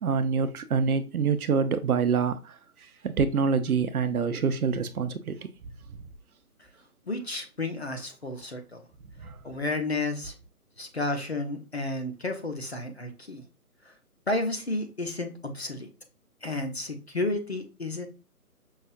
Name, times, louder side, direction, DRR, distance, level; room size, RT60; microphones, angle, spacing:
voice 1, 0.0-2.6 3.0-5.4 9.2-9.4, right 5 dB, 70° right, 0.6 m, -26 dB
voice 2, 7.1-8.8 9.4-10.3 10.8-13.4 14.3-15.9 16.4-18.1, left 2 dB, 45° left, 0.5 m, -32 dB
5.5 x 2.3 x 2.5 m
hypercardioid pair, 175°, 46 cm